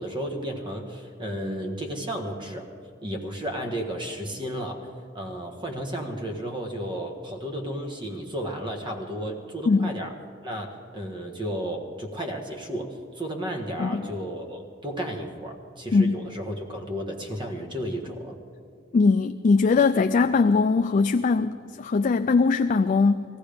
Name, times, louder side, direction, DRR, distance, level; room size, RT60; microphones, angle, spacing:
voice 1, 0.0-2.7 3.0-4.9 5.1-10.1 10.4-18.4, equal, 25° right, 3 dB, 1.5 m, -33 dB
voice 2, 18.9-23.3, left 4 dB, 40° left, 9 dB, 0.3 m, -21 dB
18.5 x 15.5 x 5.1 m, 2.2 s
head